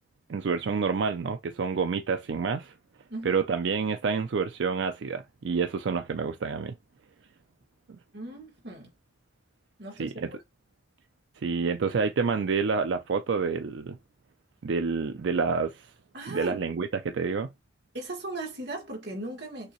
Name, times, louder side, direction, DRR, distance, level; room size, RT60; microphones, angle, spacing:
voice 1, 0.3-2.7 3.3-6.7 10.0-10.1 11.4-14.0 14.6-15.9 16.3-17.5, right 5 dB, 80° right, 0.4 m, -28 dB
voice 2, 8.1-8.9 9.8-10.2 16.1-16.6 17.9-19.7, right 2 dB, 65° right, 2.1 m, -37 dB
6.6 x 2.7 x 3.0 m
head